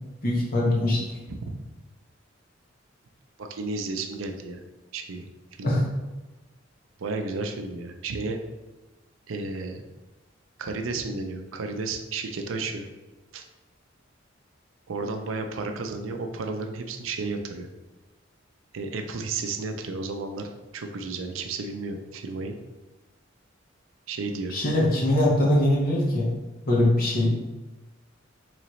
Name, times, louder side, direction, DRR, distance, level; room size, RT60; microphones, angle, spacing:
voice 1, 0.2-1.0 5.6-5.8 24.5-26.3 26.7-27.3, left 1 dB, 45° left, -4 dB, 1.1 m, -22 dB
voice 2, 3.4-4.6 4.9-5.2 5.6-5.8 7.0-8.4 9.3-9.8 10.6-12.9 13.3-13.4 14.9-17.7 18.7-22.5 24.1-24.5, right 3 dB, 85° right, 5 dB, 0.5 m, -32 dB
3.9 x 3.2 x 3.1 m, 1.1 s
head